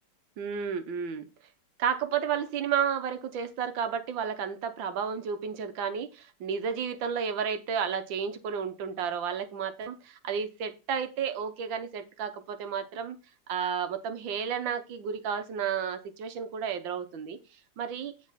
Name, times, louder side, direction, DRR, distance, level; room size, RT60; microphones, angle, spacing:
voice 1, 0.4-1.3 1.8-13.2 13.5-17.4 17.8-18.1, right 7 dB, 90° right, 9 dB, 1.7 m, -32 dB
9.7 x 4.1 x 5.6 m, 0.29 s
omnidirectional pair, 2.0 m